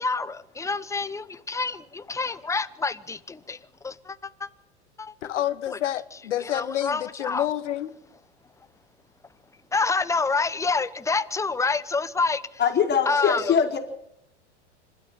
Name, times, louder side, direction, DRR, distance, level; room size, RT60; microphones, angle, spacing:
voice 1, 0.0-4.5 5.0-5.1 5.7-5.8 6.4-7.5 9.7-12.6 13.1-13.5, left 4 dB, 10° left, 1.0 m, -28 dB
voice 2, 5.2-7.9, left 12 dB, 75° left, 1.4 m, -28 dB
voice 3, 12.6-13.8, left 7 dB, 30° left, 4.4 m, -22 dB
26.0 x 12.5 x 9.0 m
hypercardioid pair, 100°, 35 cm